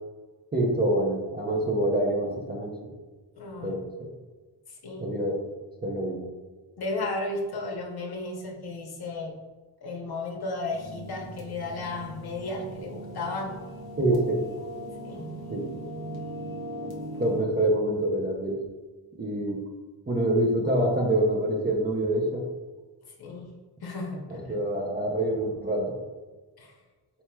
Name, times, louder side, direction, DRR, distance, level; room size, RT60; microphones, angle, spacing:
voice 1, 0.5-2.9 3.6-4.1 5.0-5.4 5.8-6.2 14.0-14.4 15.5-15.7 17.2-18.6 19.2-19.6 20.1-22.4 24.3-25.9, right 1 dB, 25° right, -2 dB, 0.6 m, -26 dB
voice 2, 3.4-3.8 4.7-5.1 6.8-9.4 9.8-13.6 15.0-15.2 23.1-24.5 26.6-26.8, left 2 dB, 60° left, 1 dB, 0.8 m, -34 dB
sound 1, 10.7-17.4, right 1 dB, 55° right, 1.0 m, -39 dB
4.5 x 4.3 x 2.2 m, 1.3 s
wide cardioid pair, 160°, 43 cm